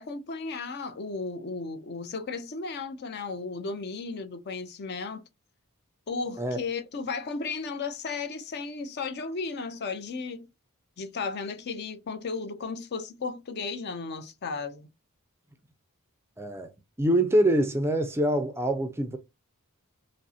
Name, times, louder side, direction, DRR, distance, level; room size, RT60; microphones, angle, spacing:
voice 1, 0.0-5.3 6.1-10.5 11.0-14.9, left 4 dB, 50° left, 0.5 m, -34 dB
voice 2, 16.4-16.7 17.0-19.2, right 1 dB, 10° right, 0.4 m, -25 dB
5.1 x 2.0 x 2.7 m
head